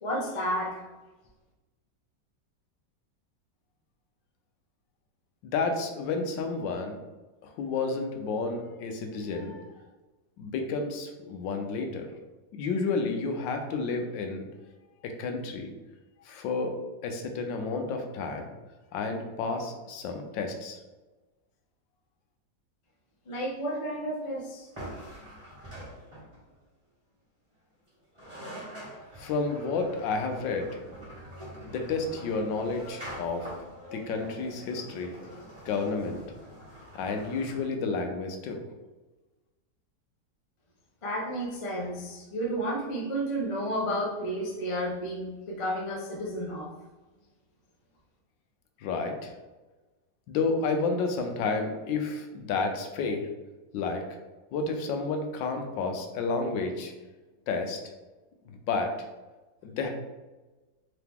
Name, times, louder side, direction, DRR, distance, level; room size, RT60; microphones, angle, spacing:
voice 1, 0.0-0.8 23.3-24.7 41.0-46.7, equal, 55° left, -2 dB, 0.3 m, -32 dB
voice 2, 5.4-7.0 7.4-9.6 10.4-12.1 12.5-14.5 15.0-15.7 16.2-16.7 17.0-18.5 18.9-20.8 29.2-30.8 31.7-33.5 33.9-35.1 35.6-36.2 36.9-38.6 48.8-49.3 50.3-53.3 53.7-54.0 54.5-56.9 57.5-57.8 58.5-58.9 59.6-59.9, left 4 dB, 90° left, 4 dB, 1.3 m, -31 dB
sound 1, 24.7-26.5 27.9-28.0 28.1-37.6, equal, 20° right, 1.2 m, -44 dB
3.8 x 3.0 x 3.5 m, 1.2 s
omnidirectional pair, 2.0 m